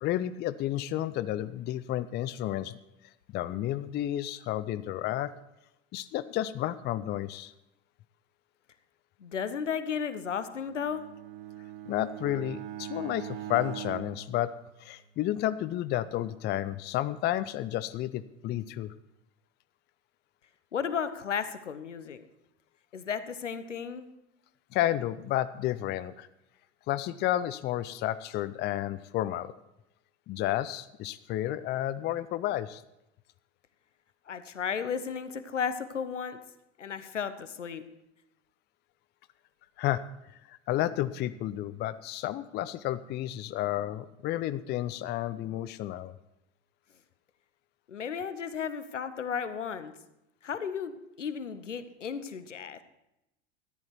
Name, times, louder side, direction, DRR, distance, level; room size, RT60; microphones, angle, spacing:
voice 1, 0.0-2.8 3.3-5.3 5.9-7.5 11.9-18.9 24.7-26.3 26.9-29.5 30.3-32.8 39.8-46.1, left 13 dB, 30° left, 15 dB, 0.5 m, -31 dB
voice 2, 9.2-11.0 20.7-22.2 22.9-24.1 34.3-36.4 36.8-37.8 47.9-49.9 50.4-52.8, left 7 dB, 85° left, 12 dB, 0.9 m, -34 dB
Bowed string instrument, 10.6-15.3, right 12 dB, 55° right, 1.0 m, -42 dB
13.5 x 10.5 x 4.6 m, 0.89 s
hypercardioid pair, 85°, 36 cm